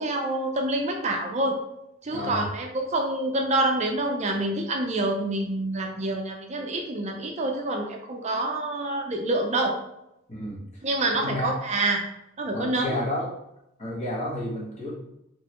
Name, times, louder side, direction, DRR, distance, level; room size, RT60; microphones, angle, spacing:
voice 1, 0.0-1.6 2.0-9.8 10.8-12.0 12.4-13.0, right 2 dB, 35° right, 2 dB, 0.5 m, -27 dB
voice 2, 2.1-2.5 10.3-11.5 12.5-13.3 13.8-14.9, left 1 dB, 35° left, -5 dB, 1.5 m, -32 dB
5.2 x 3.0 x 3.0 m, 0.84 s
head